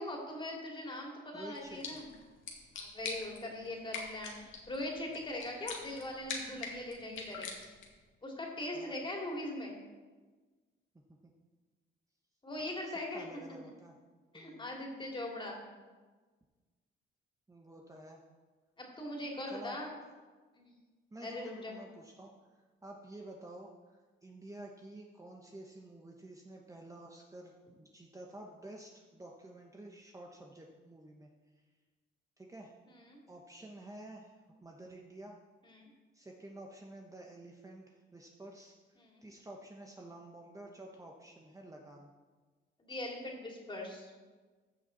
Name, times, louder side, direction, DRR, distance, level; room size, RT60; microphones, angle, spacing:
voice 1, 0.0-2.1 2.7-7.5 8.2-9.8 12.4-13.3 14.3-15.6 18.8-19.9 20.6-20.7 21.2-21.7 32.9-33.2 35.6-35.9 39.0-39.2 42.8-44.1, left 1 dB, 25° left, -1 dB, 2.8 m, -41 dB
voice 2, 1.3-2.0 8.7-8.9 11.2-11.3 12.8-14.0 14.3-14.6 17.5-18.2 19.5-19.8 21.1-27.5 27.8-31.3 32.4-32.7 33.3-35.4 36.1-42.1, right 1 dB, 15° right, 0 dB, 1.1 m, -50 dB
sound 1, 1.5-8.0, left 4 dB, 75° left, 2.0 m, -45 dB
15.0 x 6.2 x 4.1 m, 1.3 s
cardioid pair, 90°, 20 cm